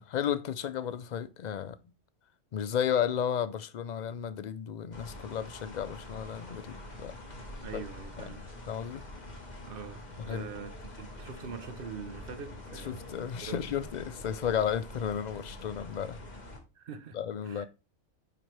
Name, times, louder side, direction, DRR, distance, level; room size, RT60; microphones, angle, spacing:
voice 1, 0.0-1.8 2.5-7.1 7.7-7.8 8.2-8.3 8.7-9.0 10.3-10.5 12.9-16.2 17.1-17.7, left 8 dB, 55° left, 0.5 m, -33 dB
sound 1, 4.9-16.6, left 1 dB, 40° left, 1.5 m, -45 dB
voice 2, 7.6-8.4 9.6-13.1 13.4-13.9 16.8-17.2 17.4-17.7, right 6 dB, 55° right, 0.9 m, -43 dB
9.0 x 4.5 x 3.2 m
omnidirectional pair, 1.2 m